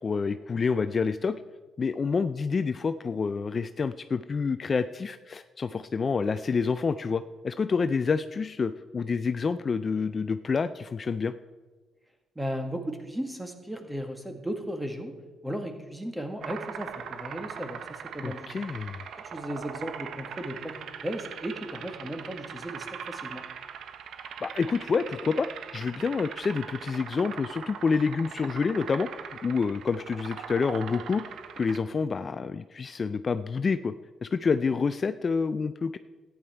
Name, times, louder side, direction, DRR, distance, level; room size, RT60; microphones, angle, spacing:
voice 1, 0.0-1.4 1.8-11.3 18.2-19.1 24.4-29.1 29.4-31.2 31.6-33.9 34.2-36.0, left 5 dB, 40° left, 11 dB, 0.4 m, -28 dB
voice 2, 12.3-15.1 15.4-18.5 19.2-20.7 21.0-23.4, equal, 10° right, 5 dB, 1.7 m, -35 dB
sound 1, 16.4-31.8, right 7 dB, 70° right, 0.7 m, -41 dB
13.5 x 9.6 x 4.5 m, 1.3 s
cardioid pair, 90°, 0 cm